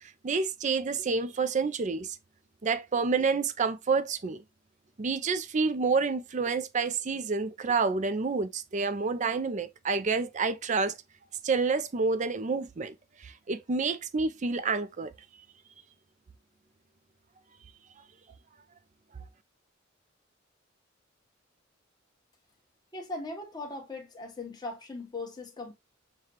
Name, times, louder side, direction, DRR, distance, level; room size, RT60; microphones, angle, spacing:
voice 1, 0.0-2.2 2.6-4.4 5.0-10.9 11.4-12.9 13.2-15.1, right 4 dB, 35° right, 0.4 m, -28 dB
voice 2, 22.9-25.7, left 2 dB, 20° left, 1.1 m, -39 dB
6.5 x 2.3 x 2.9 m
head